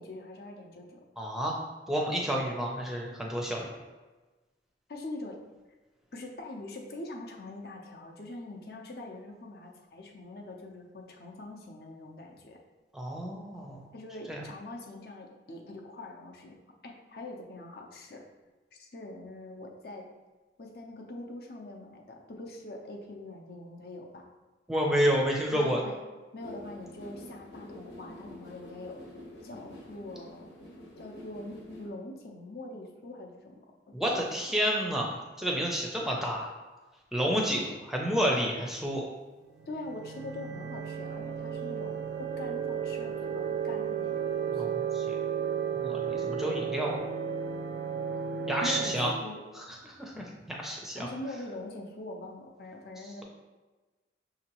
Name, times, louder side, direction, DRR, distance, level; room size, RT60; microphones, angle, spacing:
voice 1, 0.0-1.0 4.9-5.4 6.1-12.6 13.9-16.6 16.8-18.2 18.7-20.1 20.6-24.3 25.5-26.0 26.3-29.0 29.4-30.5 31.0-33.6 34.1-34.4 39.7-44.6 48.6-49.4 50.9-53.2, left 2 dB, 60° left, 0 dB, 0.6 m, -43 dB
voice 2, 1.2-1.6 1.9-3.7 12.9-13.9 14.3-14.4 24.7-25.8 33.9-36.5 37.1-39.1 44.5-45.2 45.7-47.0 48.5-49.1 49.5-51.1, equal, ahead, -2 dB, 0.5 m, -30 dB
sound 1, 26.4-31.9, left 1 dB, 80° left, 1.0 m, -47 dB
sound 2, 39.5-49.1, right 7 dB, 75° right, 0.5 m, -33 dB
5.9 x 2.8 x 2.9 m, 1.2 s
head